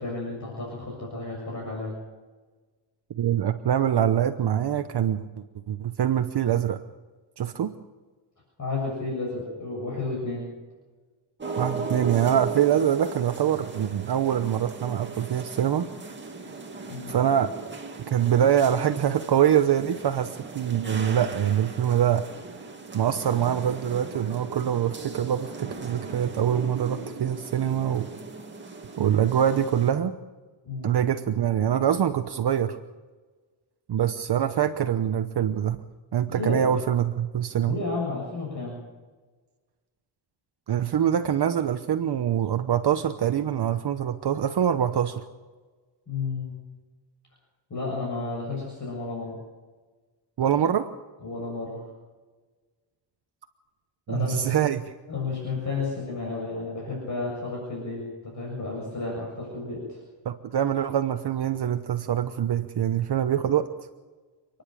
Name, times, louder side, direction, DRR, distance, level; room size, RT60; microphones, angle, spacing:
voice 1, 0.0-1.9 8.6-10.4 16.9-17.2 30.6-31.0 36.3-36.7 37.6-38.7 46.1-46.5 47.7-49.4 51.2-51.8 54.1-54.4 55.1-60.0, left 3 dB, 35° left, -3 dB, 7.2 m, -32 dB
voice 2, 3.1-5.3 5.7-6.8 7.4-7.7 11.6-15.9 17.1-17.5 18.1-22.2 22.9-28.1 29.0-30.1 30.8-32.8 33.9-35.8 36.1-37.8 40.7-45.2 50.4-50.9 54.1-54.8 60.2-63.7, right 9 dB, 55° right, 8 dB, 1.0 m, -24 dB
sound 1, 11.4-29.9, right 4 dB, 20° right, 2.4 m, -38 dB
29.0 x 10.5 x 9.1 m, 1.3 s
wide cardioid pair, 140°, 49 cm